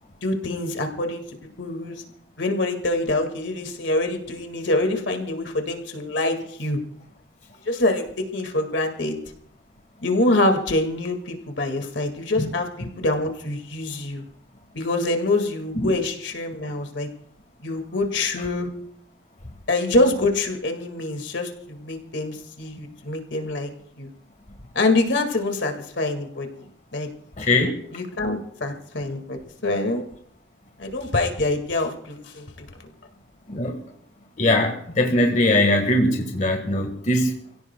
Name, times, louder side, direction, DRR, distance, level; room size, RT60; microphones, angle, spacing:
voice 1, 0.2-1.2 1.6-2.0 2.4-6.8 7.7-9.2 10.0-14.2 14.7-17.1 17.6-18.7 19.7-23.7 24.0-24.1 24.7-26.5 26.9-27.1 27.9-30.0 30.8-32.7, left 2 dB, 85° left, 5 dB, 2.0 m, -25 dB
voice 2, 27.4-27.7 33.5-33.8 34.4-37.4, left 1 dB, 45° left, 4 dB, 1.5 m, -21 dB
28.5 x 16.5 x 2.3 m, 0.67 s
head